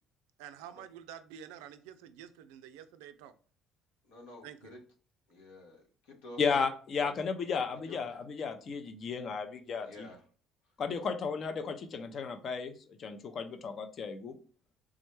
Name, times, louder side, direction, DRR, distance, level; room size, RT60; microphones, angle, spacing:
voice 1, 0.4-3.3 4.4-4.7, right 9 dB, 90° right, 10 dB, 0.3 m, -49 dB
voice 2, 4.0-4.8 5.3-6.4 7.7-8.0 9.8-10.2, left 2 dB, 85° left, 0 dB, 1.0 m, -50 dB
voice 3, 6.4-10.1 10.8-12.7 13.0-14.3, left 5 dB, 50° left, 8 dB, 0.5 m, -34 dB
3.5 x 2.1 x 3.1 m, 0.42 s
supercardioid pair, 75°, 0 cm